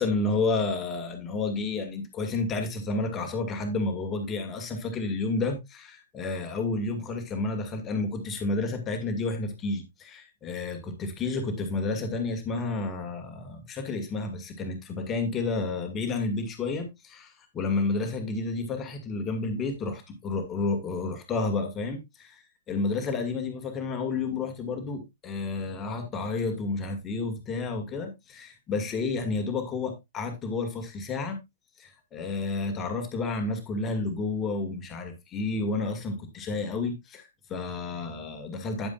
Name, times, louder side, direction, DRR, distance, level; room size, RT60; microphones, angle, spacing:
voice 1, 0.0-31.4 31.8-38.9, left 3 dB, 20° left, 2.1 m, -31 dB
10.0 x 9.4 x 2.4 m
figure-of-eight pair, 110°, 0 cm